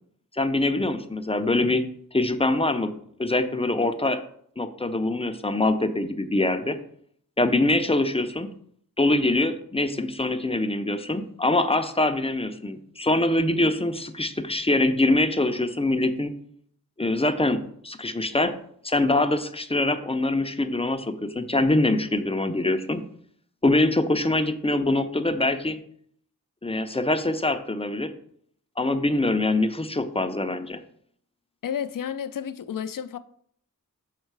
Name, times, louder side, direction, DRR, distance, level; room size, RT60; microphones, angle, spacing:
voice 1, 0.3-1.8 2.1-2.9 3.2-4.2 4.6-6.8 7.4-8.5 9.0-16.3 17.0-18.5 18.8-23.0 23.6-25.8 26.6-28.1 28.8-30.8, left 2 dB, 15° left, 0.5 m, -24 dB
voice 2, 31.6-33.2, left 8 dB, 70° left, 0.5 m, -31 dB
6.5 x 4.5 x 4.6 m
wide cardioid pair, 95°, 34 cm